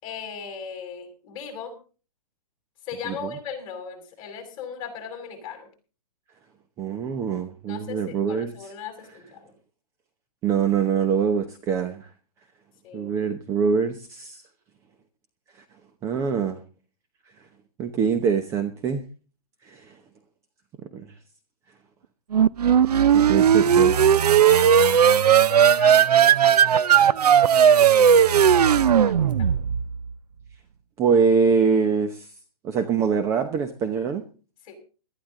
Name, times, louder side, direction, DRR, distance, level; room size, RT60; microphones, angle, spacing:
voice 1, 0.0-1.7 2.8-5.7 7.7-9.4 12.8-13.1 23.0-23.3 23.9-24.0 24.4-28.3 28.6-29.6 34.6-34.7, left 6 dB, 25° left, 4 dB, 6.1 m, -38 dB
voice 2, 6.8-8.7 10.4-12.1 12.9-14.4 16.0-16.6 17.8-19.0 19.6-20.0 20.9-21.1 23.1-24.0 31.0-32.3 32.6-34.2, right 6 dB, 15° right, 8 dB, 0.9 m, -24 dB
sound 1, 22.3-30.0, right 8 dB, 80° right, 0.7 m, -17 dB
19.0 x 13.5 x 3.8 m, 0.37 s
hypercardioid pair, 160°, 20 cm